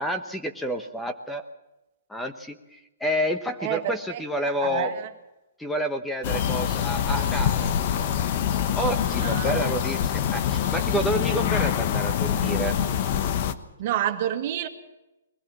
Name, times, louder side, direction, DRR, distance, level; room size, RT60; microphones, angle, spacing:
voice 1, 0.0-1.4 2.1-4.9 5.6-8.1 8.7-12.7, equal, 5° left, 6 dB, 1.1 m, -29 dB
voice 2, 3.6-5.1 8.9-9.6 13.8-14.7, right 11 dB, 50° right, 7 dB, 1.9 m, -29 dB
sound 1, 6.2-13.5, left 9 dB, 45° left, 1.2 m, -25 dB
22.0 x 16.5 x 7.3 m, 0.96 s
hypercardioid pair, 130°, 0 cm